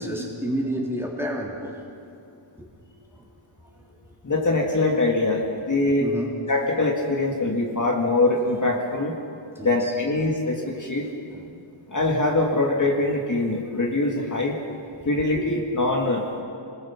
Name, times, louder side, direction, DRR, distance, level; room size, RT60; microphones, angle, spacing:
voice 1, 0.0-1.8 2.6-2.7 3.2-3.3 6.0-6.4 9.5-9.9 11.3-11.5 15.0-15.1 15.4-15.5, right 1 dB, 5° right, -2 dB, 3.5 m, -30 dB
voice 2, 4.2-6.1 6.5-9.1 9.6-11.1 11.9-14.6 15.0-16.4, left 2 dB, 35° left, -1 dB, 2.5 m, -23 dB
29.5 x 20.5 x 6.1 m, 2.6 s
wide cardioid pair, 145°, 49 cm